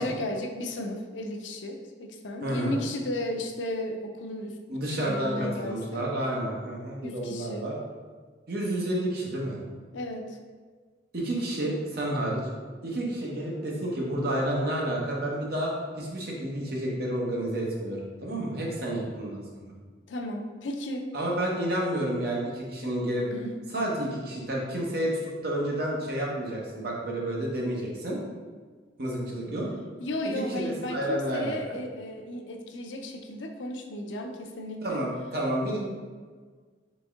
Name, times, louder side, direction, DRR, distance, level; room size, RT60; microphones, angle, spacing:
voice 1, 0.0-4.6 4.9-6.1 7.0-7.7 9.9-10.4 20.1-21.1 23.3-23.6 30.0-35.0, left 1 dB, 85° left, 3 dB, 0.5 m, -34 dB
voice 2, 2.4-2.8 4.7-7.7 8.5-9.6 11.1-12.5 12.8-19.7 21.1-23.2 23.7-28.2 29.0-29.7 30.2-31.6 34.8-35.8, right 1 dB, 55° right, -3 dB, 1.0 m, -30 dB
4.1 x 3.5 x 3.5 m, 1.5 s
head